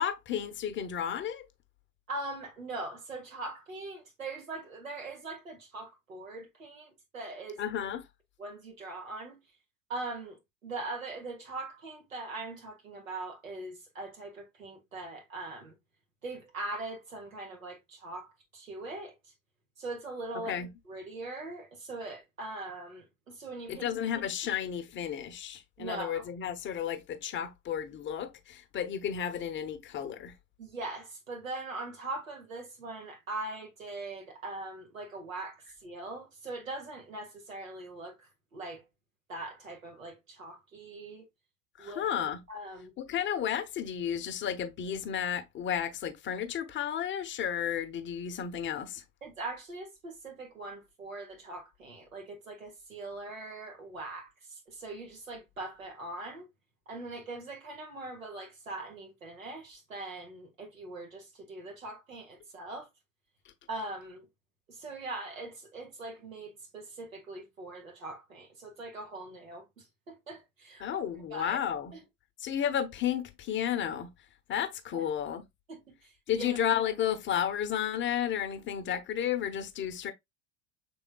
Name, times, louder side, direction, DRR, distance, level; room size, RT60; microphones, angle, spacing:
voice 1, 0.0-1.5 7.6-8.1 20.5-20.7 23.7-30.3 41.8-42.4 43.0-49.0 70.8-71.9 72.4-74.1 74.5-75.4 76.3-80.1, left 9 dB, 30° left, 0.7 m, -32 dB
voice 2, 2.1-7.6 8.4-9.4 9.9-15.7 16.2-19.3 19.8-20.6 20.8-23.9 25.8-26.3 30.6-38.8 39.3-41.3 41.8-42.1 42.5-42.9 49.2-56.5 56.9-62.9 63.7-64.3 64.7-71.0 71.3-71.6 71.9-72.0 74.9-75.0 75.7-76.6, right 2 dB, 85° right, 1.6 m, -41 dB
6.1 x 3.5 x 2.2 m
figure-of-eight pair, 80°, 39 cm